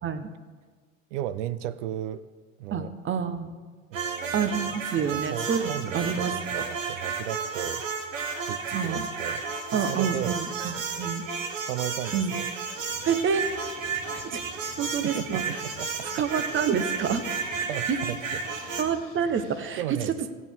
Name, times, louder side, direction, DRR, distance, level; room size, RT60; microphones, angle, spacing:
voice 1, 1.1-2.3 2.6-2.9 3.9-7.8 8.5-9.4 9.7-10.4 11.6-12.5 14.6-16.1 17.7-18.8 19.8-20.1, right 12 dB, 65° right, 15 dB, 0.7 m, -35 dB
voice 2, 2.7-3.5 4.3-6.6 8.7-9.1 9.7-11.2 12.1-12.3 13.1-13.5 14.1-14.4 14.8-15.4 16.1-17.2 17.5-18.0 18.8-19.8, right 7 dB, 30° right, 10 dB, 1.0 m, -28 dB
sound 1, 3.9-18.8, right 5 dB, 80° right, 1.2 m, -32 dB
sound 2, 12.7-19.8, left 6 dB, 55° left, 1.3 m, -49 dB
15.5 x 8.5 x 3.6 m, 1.4 s
hypercardioid pair, 75°, 39 cm